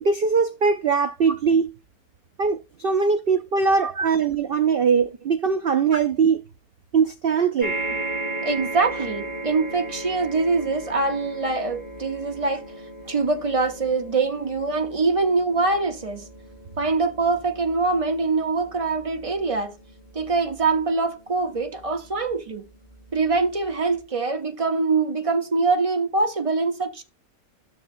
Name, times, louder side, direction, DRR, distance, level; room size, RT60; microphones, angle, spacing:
voice 1, 0.0-1.7 2.4-6.4 6.9-7.7, right 5 dB, 90° right, 0.5 m, -21 dB
sound 1, 7.6-22.2 22.9-23.0 23.3-23.4, right 2 dB, 40° left, 4.4 m, -36 dB
voice 2, 8.4-12.6 13.1-16.2 16.8-19.7 20.1-22.6 23.1-27.0, right 3 dB, 35° right, 0.5 m, -24 dB
12.5 x 6.4 x 2.5 m
omnidirectional pair, 1.6 m